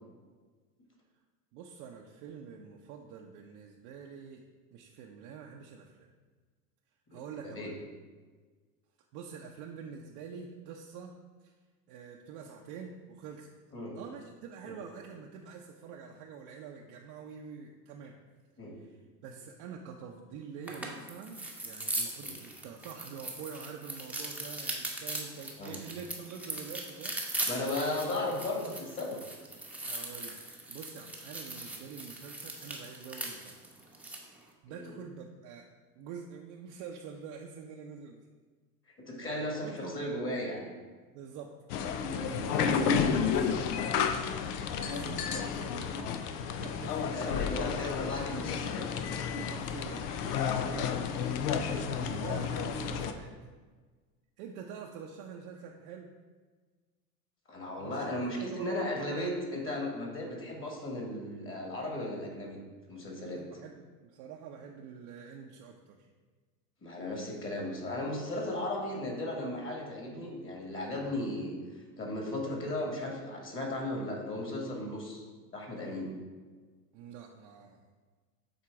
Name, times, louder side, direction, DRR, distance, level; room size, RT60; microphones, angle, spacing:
voice 1, 1.5-4.4 4.7-6.0 7.1-7.8 9.1-11.1 11.4-11.5 11.9-13.5 13.9-18.1 18.8-19.0 19.2-27.2 29.8-30.4 30.7-33.6 34.6-35.6 36.0-38.2 39.2-40.0 41.1-43.5 44.7-46.3 46.6-47.7 49.4-50.1 50.6-51.0 51.7-53.3 54.4-56.1 57.8-58.7 63.3-66.1 76.9-77.8, right 6 dB, 55° right, 0 dB, 0.7 m, -46 dB
voice 2, 7.1-7.7 13.7-13.9 14.6-14.8 18.6-18.7 22.2-22.3 25.6-25.7 27.5-29.2 34.7-34.9 39.1-40.7 47.1-48.9 50.6-50.8 57.5-62.6 62.9-63.4 66.8-71.6 72.0-75.2 75.5-76.1, left 1 dB, 25° left, 0 dB, 1.7 m, -36 dB
sound 1, 20.6-34.3, right 2 dB, 5° right, 0.8 m, -39 dB
sound 2, 41.7-53.1, left 6 dB, 75° left, 0.6 m, -31 dB
7.6 x 2.9 x 4.7 m, 1.4 s
hypercardioid pair, 90°, 47 cm